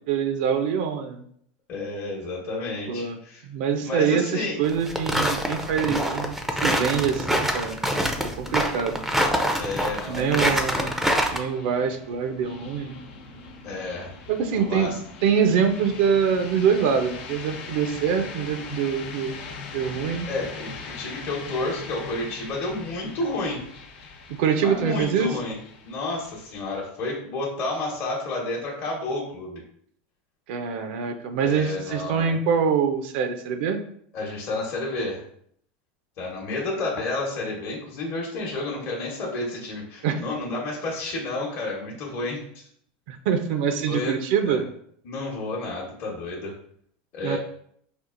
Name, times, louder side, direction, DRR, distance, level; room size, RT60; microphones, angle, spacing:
voice 1, 0.1-1.2 2.9-3.2 3.4-7.8 8.2-9.0 10.1-10.9 11.3-13.0 14.3-14.9 15.2-19.4 19.7-20.3 24.3-25.3 30.5-33.8 40.0-40.2 43.1-44.6 47.2-47.4, right 7 dB, 70° right, 7 dB, 0.5 m, -24 dB
voice 2, 1.7-3.5 3.8-4.6 9.6-11.0 13.6-14.1 14.5-15.0 20.3-23.6 24.5-25.6 25.8-29.6 31.4-32.4 34.1-35.2 36.2-42.7 43.9-44.2 44.4-44.6 45.0-46.5 47.1-47.4, left 2 dB, 45° left, -4 dB, 0.9 m, -31 dB
sound 1, 4.6-11.4, equal, 5° right, 0.4 m, -25 dB
sound 2, 8.4-26.8, left 4 dB, 75° left, 0.7 m, -41 dB
4.3 x 2.4 x 2.5 m, 0.65 s
supercardioid pair, 125°, 6 cm